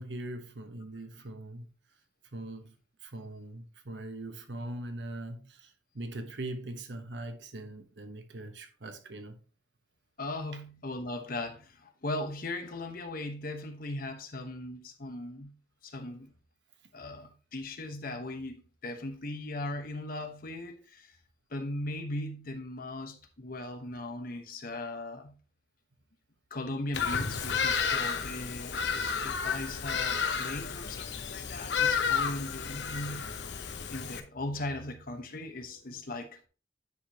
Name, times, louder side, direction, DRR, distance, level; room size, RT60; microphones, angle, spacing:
voice 1, 0.0-1.7 2.3-2.7 3.0-9.4, right 1 dB, 90° right, 1.1 m, -41 dB
voice 2, 10.2-15.5 15.8-16.3 16.9-21.1 21.5-25.4 26.5-33.4 33.9-36.5, left 2 dB, 55° left, 1.1 m, -38 dB
Bird vocalization bird call bird song, 26.9-34.2, left 6 dB, 85° left, 0.8 m, -31 dB
9.5 x 5.1 x 2.9 m
head